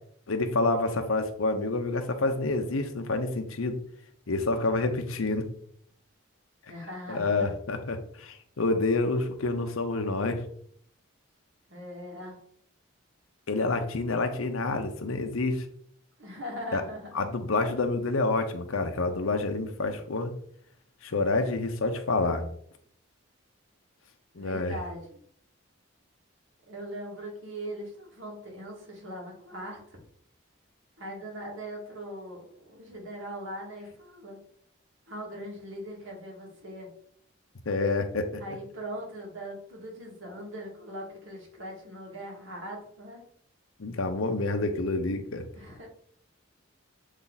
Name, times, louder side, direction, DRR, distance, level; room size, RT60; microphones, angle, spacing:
voice 1, 0.3-3.8 4.3-5.5 7.1-10.4 13.5-15.6 16.7-16.8 17.1-20.3 21.0-22.4 24.4-24.7 37.7-38.4 43.8-45.4, left 3 dB, 90° left, 6 dB, 0.8 m, -28 dB
voice 2, 6.7-7.5 11.7-12.4 13.7-13.8 16.2-17.3 24.3-25.2 26.7-30.0 31.0-34.4 35.1-36.9 38.4-43.2 45.5-45.9, equal, 70° right, -2 dB, 2.2 m, -40 dB
7.2 x 3.3 x 4.0 m, 0.63 s
head